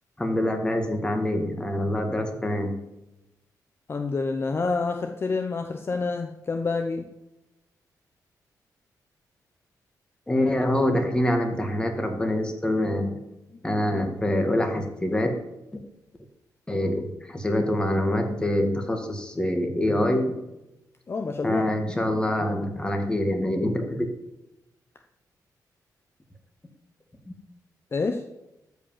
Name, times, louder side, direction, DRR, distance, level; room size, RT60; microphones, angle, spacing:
voice 1, 0.2-2.7 10.3-13.2 13.6-15.4 16.7-20.3 21.4-24.1, left 1 dB, 15° left, 4 dB, 1.9 m, -25 dB
voice 2, 3.9-7.1 21.1-21.6 27.9-28.2, left 4 dB, 35° left, 5 dB, 0.8 m, -28 dB
13.5 x 5.2 x 7.4 m, 0.95 s
cardioid pair, 115°, 7 cm